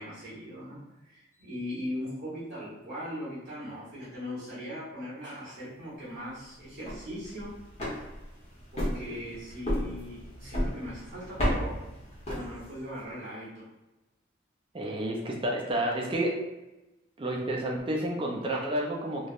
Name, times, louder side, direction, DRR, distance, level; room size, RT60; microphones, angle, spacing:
voice 1, 0.0-7.6 7.9-8.0 8.7-11.8 12.3-13.7, equal, 70° right, -10 dB, 1.1 m, -39 dB
sound 1, 6.7-13.0, equal, 30° left, 0.8 m, -34 dB
voice 2, 14.7-16.4 17.2-19.3, right 1 dB, 25° right, -1 dB, 0.4 m, -30 dB
3.1 x 2.1 x 2.4 m, 1.0 s
head